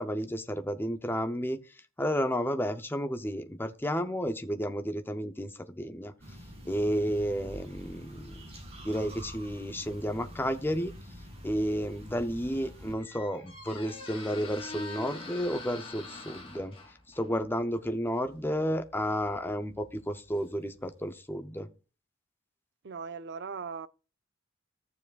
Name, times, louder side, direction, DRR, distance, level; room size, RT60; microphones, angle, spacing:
voice 1, 0.0-6.1 6.7-8.5 8.8-10.9 11.4-16.8 17.1-21.7, equal, 10° left, 0.6 m, -32 dB
sound 1, 6.2-12.9, equal, 30° right, 2.4 m, -46 dB
Squeak, 12.3-21.0, left 3 dB, 25° left, 2.8 m, -46 dB
voice 2, 22.8-23.9, right 5 dB, 50° right, 0.5 m, -38 dB
14.5 x 7.1 x 2.4 m
head